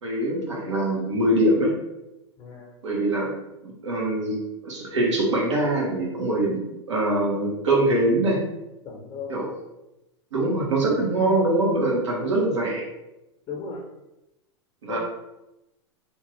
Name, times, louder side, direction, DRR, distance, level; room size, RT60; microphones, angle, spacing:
voice 1, 0.0-1.7 2.8-3.3 3.6-4.4 4.6-6.6 6.9-8.4 9.3-9.5 10.3-12.8 14.8-15.0, right 1 dB, 85° right, -2 dB, 1.0 m, -23 dB
voice 2, 2.4-2.9 8.8-9.3 13.5-13.8 14.9-15.0, left 5 dB, 35° left, 1 dB, 0.8 m, -36 dB
2.8 x 2.4 x 3.1 m, 0.93 s
hypercardioid pair, 105°, 15 cm